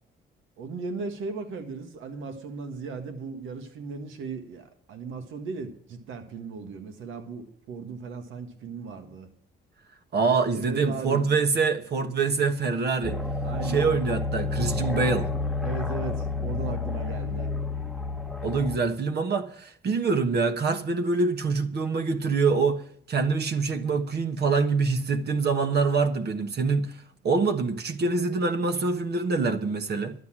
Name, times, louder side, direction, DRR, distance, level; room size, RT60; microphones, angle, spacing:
voice 1, 0.6-9.3 10.4-11.4 13.4-13.9 15.6-17.5, right 4 dB, 85° right, 1.7 m, -37 dB
voice 2, 10.1-13.2 13.6-15.3 18.4-22.8 23.1-27.0 27.2-30.1, right 4 dB, 55° right, 1.3 m, -25 dB
sound 1, 13.0-18.8, left 3 dB, ahead, 1.1 m, -30 dB
12.0 x 8.2 x 7.4 m
cardioid pair, 90°, 20 cm